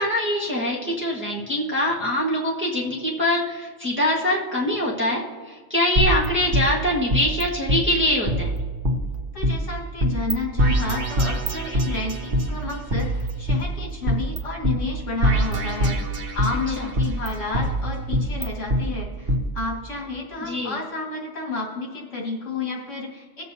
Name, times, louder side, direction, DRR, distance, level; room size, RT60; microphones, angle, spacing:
voice 1, 0.0-5.2 5.5-8.5 16.8-16.9 20.4-20.7, left 1 dB, 10° right, -4 dB, 1.4 m, -23 dB
sound 1, 6.0-7.4 7.7-7.8 8.3-9.5 10.0-10.3 10.6-12.4 12.9-14.4 14.6-14.7 15.2-16.6 17.0-18.8 19.3-19.4, equal, 50° right, 1.1 m, -23 dB
voice 2, 9.3-16.0 16.3-23.4, left 3 dB, 80° left, -2 dB, 2.2 m, -31 dB
18.0 x 7.6 x 2.8 m, 1.5 s
omnidirectional pair, 1.3 m